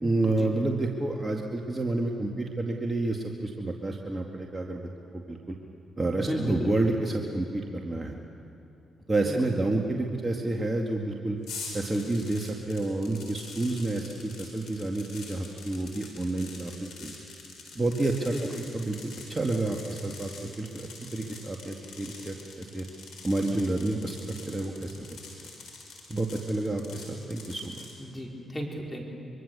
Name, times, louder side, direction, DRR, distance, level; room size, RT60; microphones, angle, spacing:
voice 1, 0.0-4.9 5.1-5.6 6.0-8.1 9.1-11.4 11.7-17.1 17.8-22.9 23.2-25.1 25.4-25.5 26.1-27.8, right 2 dB, 25° right, 1 dB, 2.2 m, -29 dB
voice 2, 6.2-6.7 9.2-9.3 18.2-18.4 28.0-29.0, equal, 20° left, -1 dB, 4.7 m, -34 dB
sound 1, 11.4-28.0, left 4 dB, 80° left, 4.5 m, -45 dB
24.5 x 23.5 x 7.0 m, 2.7 s
hypercardioid pair, 45°, 0 cm